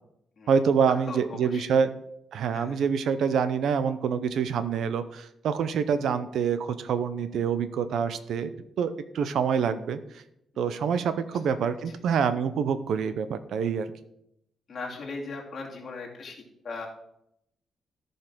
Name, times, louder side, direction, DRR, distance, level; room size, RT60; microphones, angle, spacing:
voice 1, 0.5-1.9 2.3-8.5 8.8-10.2 10.6-13.9, right 6 dB, 65° right, 12 dB, 0.7 m, -26 dB
voice 2, 1.1-1.7 2.5-2.8 10.5-10.8 11.3-11.9 14.7-16.9, left 3 dB, 35° left, -1 dB, 2.5 m, -39 dB
14.0 x 5.5 x 6.1 m, 0.77 s
wide cardioid pair, 175°, 0 cm